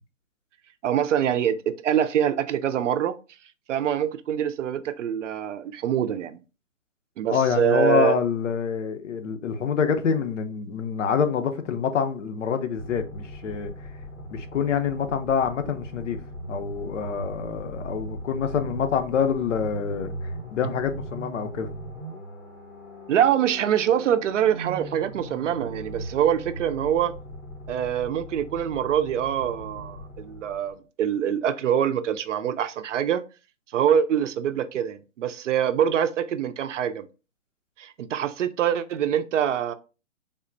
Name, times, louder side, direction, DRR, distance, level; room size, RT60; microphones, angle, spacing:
voice 1, 0.8-3.2 3.7-6.4 7.2-8.2 23.1-27.1 27.7-33.2 33.7-37.1 37.8-39.7, right 9 dB, 65° right, 0.5 m, -24 dB
voice 2, 7.3-13.7 14.3-16.2 16.5-20.1 20.5-21.7, left 7 dB, 65° left, 0.7 m, -26 dB
sound 1, 12.7-30.8, right 1 dB, 90° left, 1.2 m, -39 dB
3.5 x 2.1 x 2.6 m
hypercardioid pair, 145°, 39 cm